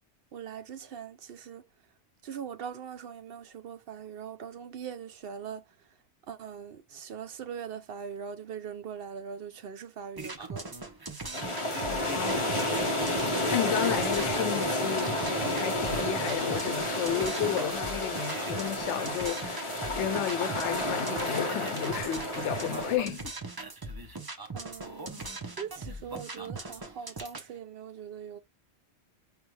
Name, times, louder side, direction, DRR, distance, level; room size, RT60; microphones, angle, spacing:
voice 1, 0.3-1.6 2.2-5.6 6.3-10.7 24.5-25.2 25.6-28.4, right 7 dB, 65° right, 0.7 m, -41 dB
sound 1, 10.1-27.5, right 3 dB, 25° right, 0.6 m, -40 dB
sound 2, 11.3-23.0, left 1 dB, 30° left, 0.8 m, -31 dB
voice 2, 11.9-12.6 13.2-23.2, left 10 dB, 80° left, 0.9 m, -33 dB
5.0 x 2.3 x 3.1 m
omnidirectional pair, 1.2 m